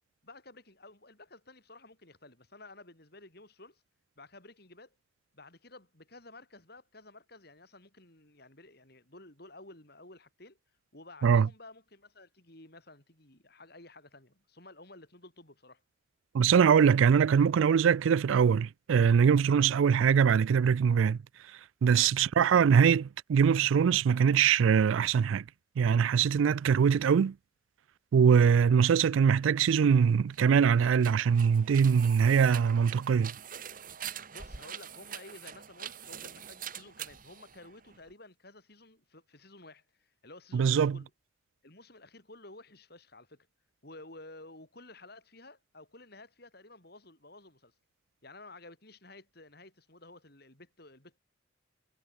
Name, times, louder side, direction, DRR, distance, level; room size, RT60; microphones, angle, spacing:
voice 1, 0.2-3.8 4.2-4.9 5.3-10.6 10.9-15.8 21.9-22.1 28.4-28.5 34.3-41.1 41.6-43.5 43.8-47.7 48.2-51.2, left 2 dB, 50° left, 6.2 m, -53 dB
voice 2, 16.3-21.2 21.8-25.4 25.8-27.3 28.1-33.3 40.5-41.0, right 7 dB, 80° right, 0.4 m, -23 dB
sound 1, 30.2-38.1, right 8 dB, 45° right, 1.6 m, -44 dB
head